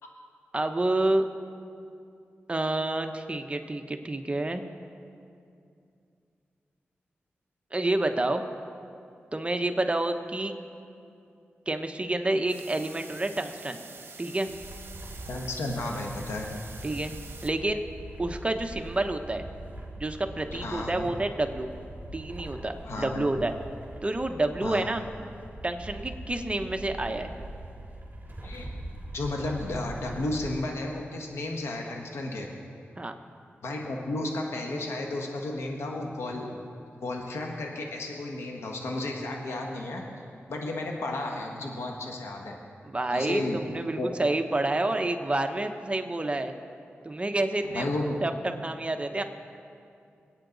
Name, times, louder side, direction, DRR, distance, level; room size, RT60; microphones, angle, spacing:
voice 1, 0.5-1.3 2.5-4.6 7.7-8.4 9.3-10.5 11.7-13.8 14.2-14.5 16.8-17.1 17.4-17.8 18.2-19.4 20.0-21.7 22.1-23.5 24.0-25.0 25.6-27.3 33.0-33.2 42.8-46.6 47.0-47.9 48.2-49.2, right 2 dB, 25° right, 6 dB, 1.0 m, -28 dB
sound 1, 12.5-17.5, right 4 dB, 60° right, 1.1 m, -46 dB
sound 2, 14.5-30.6, right 1 dB, 40° right, 3.5 m, -42 dB
voice 2, 15.3-16.5 20.5-21.1 22.8-23.3 24.6-24.9 28.4-28.7 29.1-32.5 33.6-36.7 37.0-40.0 40.5-42.6 43.1-43.6 44.0-44.1 47.6-48.2, left 2 dB, 90° left, 1 dB, 1.4 m, -33 dB
23.0 x 9.0 x 4.0 m, 2.5 s
cardioid pair, 55°, 4 cm